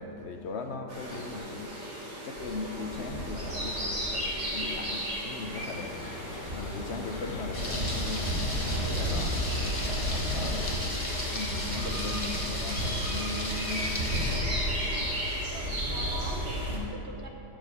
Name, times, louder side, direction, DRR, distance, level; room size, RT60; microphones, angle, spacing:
voice 1, 0.0-1.7 2.2-6.0 6.5-8.3 8.6-14.5, left 3 dB, 50° left, 5 dB, 0.9 m, -38 dB
sound 1, 0.9-16.8, equal, 75° right, 3.0 m, -33 dB
sound 2, 5.5-10.8, left 3 dB, 70° left, 1.4 m, -41 dB
Thunder, 7.5-14.4, left 1 dB, 20° left, 1.2 m, -36 dB
voice 2, 15.5-17.3, equal, 45° right, 1 dB, 1.2 m, -41 dB
15.0 x 5.2 x 6.6 m, 2.9 s
omnidirectional pair, 1.8 m